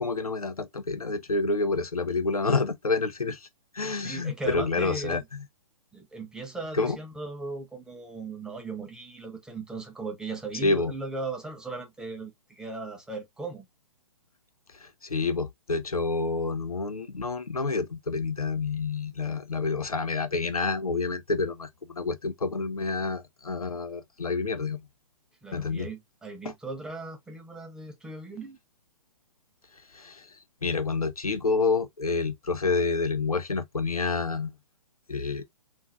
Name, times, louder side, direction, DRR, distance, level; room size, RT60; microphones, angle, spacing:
voice 1, 0.0-3.5 3.7-5.4 6.7-7.0 10.6-10.9 14.7-24.9 25.5-25.9 26.4-26.5 29.9-30.3 30.6-34.5 35.1-35.4, left 4 dB, 90° left, 0.6 m, -28 dB
voice 2, 3.9-5.2 5.9-13.7 25.4-28.6, right 3 dB, 5° right, 0.6 m, -38 dB
3.7 x 2.5 x 2.4 m
figure-of-eight pair, 125°, 18 cm